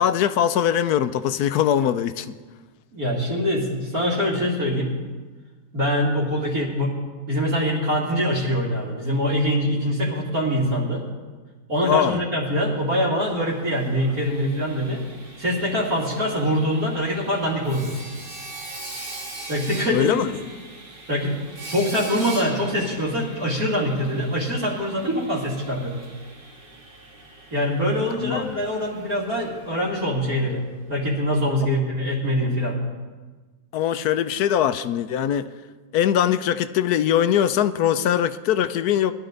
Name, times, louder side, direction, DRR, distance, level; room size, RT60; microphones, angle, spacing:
voice 1, 0.0-2.4 11.8-12.2 19.9-20.3 28.2-28.6 33.7-35.5 35.9-39.1, left 10 dB, 70° left, 12 dB, 1.1 m, -21 dB
voice 2, 2.9-4.9 5.7-7.0 7.3-11.0 11.7-15.0 15.4-18.0 19.5-20.2 21.1-21.4 21.7-26.0 27.5-30.6 30.9-32.8, equal, 55° right, -8 dB, 3.0 m, -24 dB
Sawing, 13.3-31.1, right 2 dB, 30° right, 1.8 m, -41 dB
20.5 x 12.0 x 4.0 m, 1.3 s
omnidirectional pair, 1.8 m